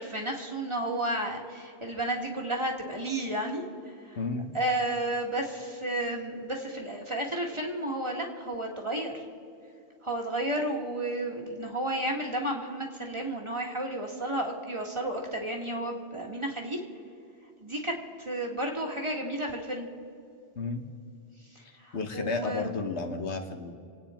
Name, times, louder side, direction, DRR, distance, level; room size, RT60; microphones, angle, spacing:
voice 1, 0.0-3.6 4.1-4.2 4.5-9.2 10.0-16.8 17.6-17.9 18.2-19.9 21.8-22.7, right 1 dB, 25° right, 0 dB, 1.8 m, -32 dB
voice 2, 4.2-4.5 20.6-20.8 21.9-23.7, left 3 dB, 75° left, 5 dB, 1.5 m, -32 dB
26.5 x 9.0 x 4.4 m, 2.6 s
omnidirectional pair, 1.2 m